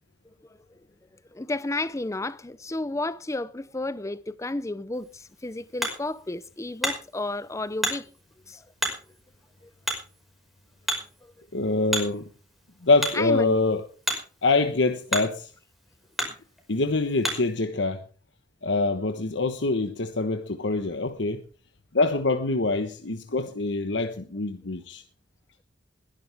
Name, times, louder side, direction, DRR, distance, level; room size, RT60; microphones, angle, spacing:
voice 1, 1.3-8.1 8.5-8.9 11.2-11.3 13.1-13.6 16.3-16.4, left 2 dB, 15° left, 0.6 m, -32 dB
Hammer, 4.9-17.6, equal, ahead, 5.3 m, -35 dB
voice 2, 11.5-12.3 12.8-13.8 14.4-15.5 16.7-18.0 18.6-21.4 21.9-25.0, left 3 dB, 80° left, 1.2 m, -25 dB
21.0 x 12.0 x 3.5 m
head